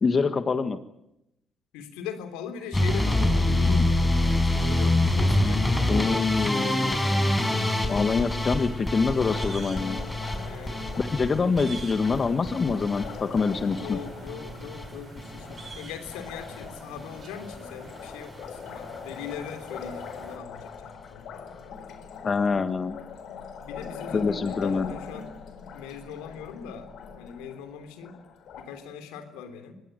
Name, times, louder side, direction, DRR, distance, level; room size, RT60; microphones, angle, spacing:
voice 1, 0.0-0.8 5.9-7.0 7.9-10.0 11.0-14.0 22.2-23.0 24.1-24.9, left 4 dB, 40° left, 10 dB, 1.6 m, -25 dB
voice 2, 1.7-7.2 10.3-11.0 13.7-21.3 23.6-25.3 25.7-28.2 28.5-29.7, left 7 dB, 85° left, 8 dB, 3.3 m, -40 dB
sound 1, 2.7-14.9 15.2-15.7 16.1-16.6 17.0-17.2 17.5-17.6 17.9-18.0, left 1 dB, 15° left, 5.6 m, -26 dB
sound 2, 6.2-20.4, right 3 dB, 45° right, 7.3 m, -46 dB
Liquid, 9.1-28.6, left 6 dB, 70° left, 4.4 m, -42 dB
25.0 x 19.5 x 9.2 m, 0.84 s
supercardioid pair, 60°, 0 cm